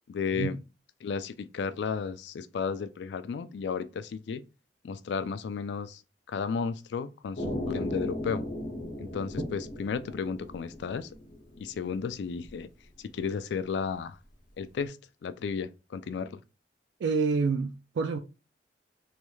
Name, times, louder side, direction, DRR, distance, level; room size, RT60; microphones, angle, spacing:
voice 1, 0.1-0.6 1.0-4.4 4.8-6.0 6.3-8.4 9.0-11.1 11.6-12.7 13.0-14.2 14.6-15.0 15.2-16.4, left 5 dB, 70° left, 0.3 m, -33 dB
sound 1, 7.4-11.9 12.2-12.6, left 1 dB, 45° left, 0.8 m, -36 dB
voice 2, 17.0-18.2, right 4 dB, 75° right, 0.3 m, -27 dB
3.2 x 3.1 x 2.3 m
head